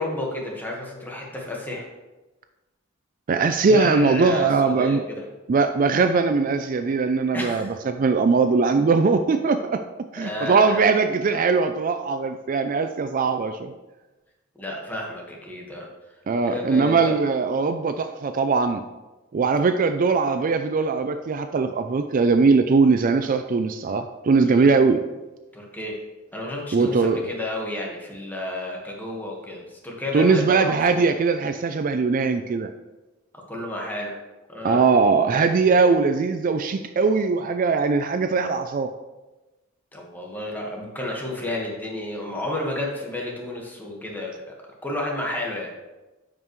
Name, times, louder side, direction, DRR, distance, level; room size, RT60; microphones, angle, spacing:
voice 1, 0.0-1.9 3.6-5.2 7.3-7.7 10.2-10.8 14.6-15.9 16.4-17.1 24.4-24.7 25.5-26.0 26.3-31.0 33.5-34.2 34.5-34.9 39.9-44.4 44.8-45.7, left 1 dB, 10° left, -1 dB, 1.5 m, -31 dB
voice 2, 3.3-5.0 5.5-9.8 10.1-13.7 16.3-18.8 19.3-25.0 26.7-27.2 30.1-32.7 34.6-38.9, right 4 dB, 45° right, 8 dB, 0.4 m, -20 dB
9.7 x 5.5 x 3.1 m, 1.1 s
head